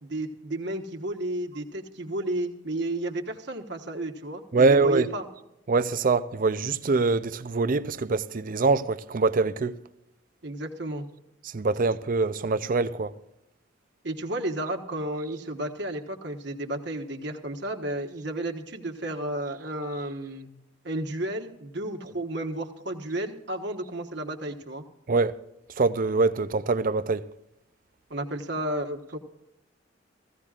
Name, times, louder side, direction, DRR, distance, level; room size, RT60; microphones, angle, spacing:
voice 1, 0.0-5.2 10.4-11.1 14.0-20.5 20.8-24.8 28.1-29.2, right 1 dB, 65° right, 1.3 m, -32 dB
voice 2, 4.5-5.1 5.7-9.8 11.4-13.2 25.1-25.4 25.8-27.3, right 3 dB, 45° right, 0.5 m, -24 dB
16.5 x 15.0 x 2.4 m
head